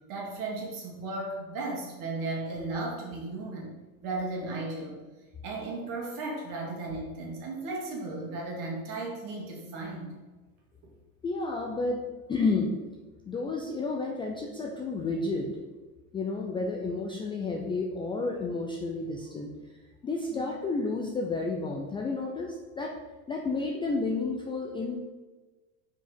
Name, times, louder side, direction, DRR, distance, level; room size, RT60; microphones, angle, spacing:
voice 1, 0.1-3.7 4.0-5.0 5.4-10.1, right 2 dB, 50° right, -1 dB, 2.1 m, -35 dB
voice 2, 11.2-12.0 12.3-12.7 13.3-15.6 16.1-19.5 20.0-22.9 23.3-25.0, left 3 dB, 15° left, 0 dB, 0.3 m, -31 dB
5.1 x 4.5 x 5.1 m, 1.2 s
supercardioid pair, 120°, 42 cm